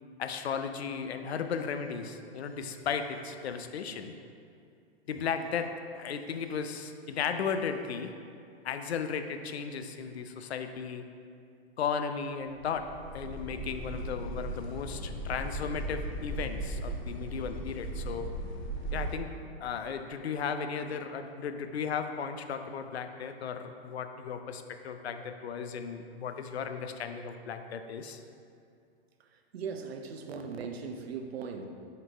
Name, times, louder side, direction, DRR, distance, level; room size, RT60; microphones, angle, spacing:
voice 1, 0.2-4.1 5.1-8.1 8.6-11.0 11.8-12.9 13.1-18.3 18.9-19.3 19.6-28.2, left 6 dB, 85° left, 8 dB, 0.5 m, -35 dB
sound 1, 12.6-19.2, right 1 dB, 25° left, 0.5 m, -37 dB
voice 2, 29.3-31.6, right 5 dB, 75° right, 5 dB, 0.7 m, -39 dB
5.3 x 4.0 x 4.4 m, 2.4 s
hypercardioid pair, 125°, 31 cm